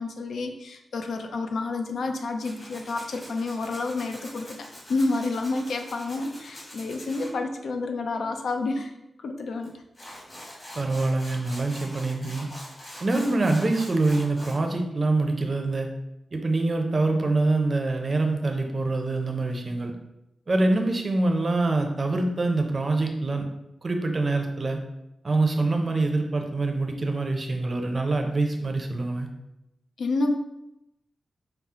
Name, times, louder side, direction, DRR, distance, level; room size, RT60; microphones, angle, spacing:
voice 1, 0.0-4.6 4.9-8.9 9.2-9.7 30.0-30.3, left 3 dB, 85° left, 5 dB, 0.4 m, -29 dB
Tools, 2.4-7.3 9.6-9.7 9.9-14.6, equal, 35° left, 1.3 m, -44 dB
voice 2, 10.8-12.5 13.0-15.9 16.3-19.9 20.5-23.5 23.8-24.8 25.2-29.3, right 2 dB, 35° right, 4 dB, 0.5 m, -25 dB
5.6 x 2.0 x 3.6 m, 0.88 s
wide cardioid pair, 155°, 0 cm